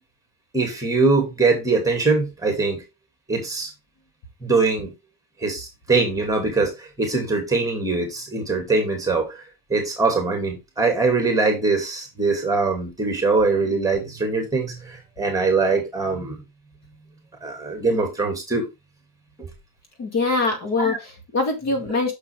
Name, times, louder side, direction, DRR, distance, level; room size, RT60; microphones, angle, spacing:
voice 1, 0.5-2.8 3.3-3.7 4.4-4.9 5.4-9.4 9.7-16.4 17.4-18.6 19.4-19.5 20.8-21.0, right 3 dB, 5° right, 2.5 m, -22 dB
voice 2, 20.0-22.1, left 3 dB, 35° left, 2.1 m, -23 dB
6.8 x 5.9 x 3.4 m
supercardioid pair, 130°, 45 cm